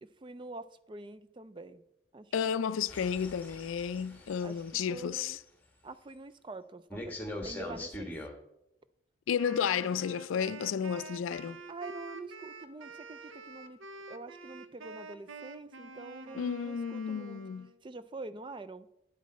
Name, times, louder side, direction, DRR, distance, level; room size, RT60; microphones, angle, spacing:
voice 1, 0.0-1.8 2.1-2.7 4.4-5.4 5.8-7.2 7.4-8.1 11.7-13.8 14.1-17.4 17.8-18.9, right 3 dB, 25° right, 0.3 m, -46 dB
voice 2, 2.3-5.4 9.3-11.6 16.3-17.7, left 7 dB, 85° left, 0.4 m, -32 dB
sound 1, 2.9-5.0 6.9-8.3, left 1 dB, 10° left, 1.2 m, -42 dB
Wind instrument woodwind instrument, 9.4-17.8, right 3 dB, 85° right, 0.8 m, -48 dB
9.6 x 8.3 x 4.2 m
head